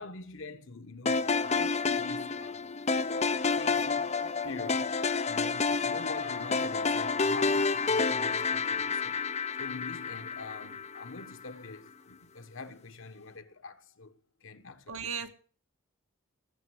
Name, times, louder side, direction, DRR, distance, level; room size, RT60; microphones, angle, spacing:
voice 1, 0.0-2.6 3.5-9.2 9.6-15.2, left 3 dB, 60° left, 1.4 m, -45 dB
sound 1, 1.1-11.3, left 4 dB, 30° left, 0.6 m, -29 dB
voice 2, 14.9-15.3, right 6 dB, 75° right, 2.0 m, -37 dB
19.0 x 7.3 x 8.0 m
head